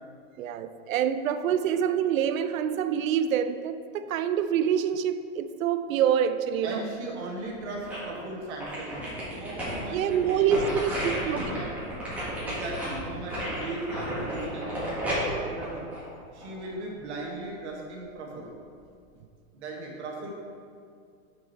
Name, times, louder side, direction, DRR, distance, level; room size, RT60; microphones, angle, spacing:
voice 1, 0.4-6.8 9.9-11.6, right 8 dB, 85° right, 12 dB, 0.6 m, -26 dB
voice 2, 6.6-11.8 12.4-15.9 16.3-18.5 19.5-20.3, right 2 dB, 60° right, -1 dB, 1.4 m, -37 dB
sound 1, 7.3-8.2 8.6-16.7 17.1-17.2, equal, 5° right, 1.8 m, -33 dB
6.0 x 6.0 x 4.4 m, 2.3 s
supercardioid pair, 155°, 39 cm